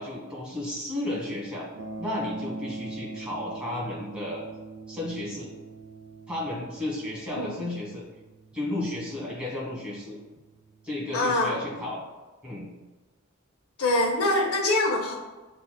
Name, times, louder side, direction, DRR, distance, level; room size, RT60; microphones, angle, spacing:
voice 1, 0.0-1.7 2.0-4.4 4.9-5.5 6.3-8.0 8.5-10.2 10.8-12.0 12.4-12.7, left 1 dB, 5° right, -5 dB, 1.4 m, -33 dB
sound 1, 1.7-11.8, right 3 dB, 55° right, 0.5 m, -43 dB
voice 2, 11.1-11.6 13.8-15.1, left 2 dB, 70° left, 2 dB, 0.5 m, -24 dB
8.2 x 2.8 x 2.2 m, 1.2 s
head